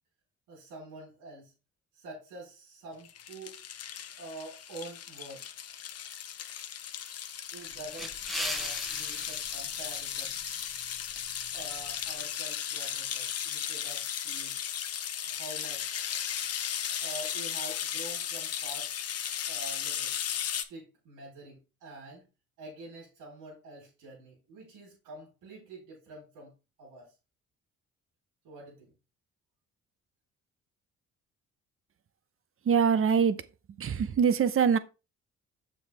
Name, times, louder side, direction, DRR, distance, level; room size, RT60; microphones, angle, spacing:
voice 1, 0.5-1.5 1.9-3.6 4.2-5.4 7.5-10.3 11.5-14.5 15.3-15.9 17.0-18.9 19.5-20.1 20.7-22.3 22.6-27.1 28.4-28.9, right 2 dB, 90° right, 3.9 m, -46 dB
sound 1, 3.0-20.6, left 9 dB, 55° left, 0.8 m, -36 dB
sound 2, 7.6-12.1, equal, ahead, 1.2 m, -40 dB
voice 2, 32.6-33.4 33.8-34.8, right 7 dB, 45° right, 0.8 m, -24 dB
7.0 x 6.1 x 3.4 m
cardioid pair, 90°, 30 cm